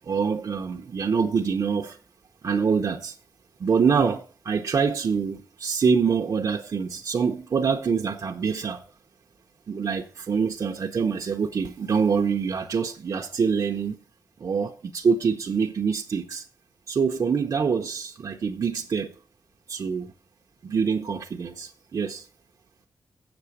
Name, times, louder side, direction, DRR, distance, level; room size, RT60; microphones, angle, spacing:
voice 1, 0.1-2.0 2.4-3.1 3.6-8.8 9.7-14.0 14.4-16.4 16.9-19.1 19.7-20.1 20.6-22.2, right 6 dB, 55° right, 0.8 m, -25 dB
8.0 x 6.9 x 6.4 m
wide cardioid pair, 180°, 7 cm